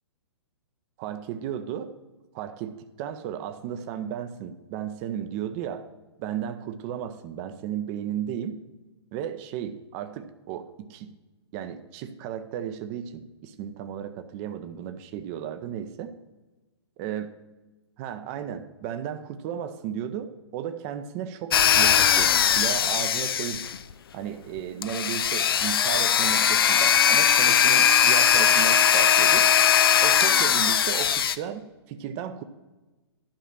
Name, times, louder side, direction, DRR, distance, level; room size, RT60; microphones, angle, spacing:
voice 1, 1.0-1.9 2.3-5.9 6.2-8.6 9.1-11.1 11.5-16.1 17.0-17.3 18.0-23.6 24.1-29.5 30.0-32.4, right 9 dB, 30° right, 9 dB, 0.7 m, -34 dB
sound 1, 21.5-23.9 24.8-31.4, left 8 dB, 55° left, 0.5 m, -20 dB
11.5 x 6.0 x 5.5 m, 1.1 s
figure-of-eight pair, 115°, 14 cm